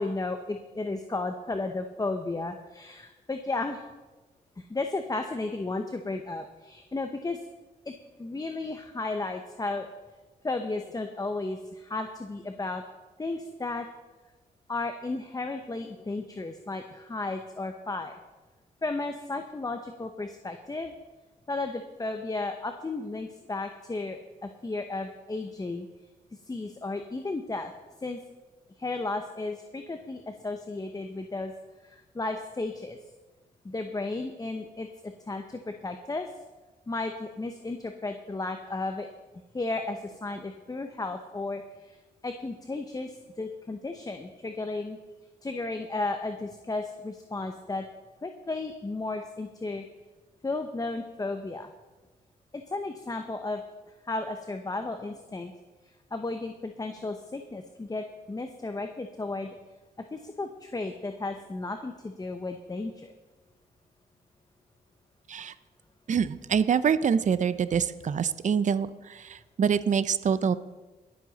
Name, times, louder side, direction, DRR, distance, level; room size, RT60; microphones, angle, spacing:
voice 1, 0.0-3.8 4.6-7.4 7.9-8.0 8.2-9.9 10.4-12.8 13.2-13.9 14.7-18.2 18.8-20.9 21.5-25.9 26.5-27.7 28.0-28.2 28.8-31.5 31.8-33.0 33.6-36.3 36.9-39.1 39.5-42.0 42.2-45.0 45.4-47.9 48.2-49.8 50.4-51.7 52.7-53.6 54.0-55.5 56.1-59.6 60.1-63.1, left 3 dB, 20° left, 6 dB, 0.9 m, -34 dB
voice 2, 66.1-70.6, right 7 dB, 50° right, 14 dB, 0.6 m, -25 dB
22.0 x 7.6 x 4.1 m, 1.2 s
cardioid pair, 75°, 17 cm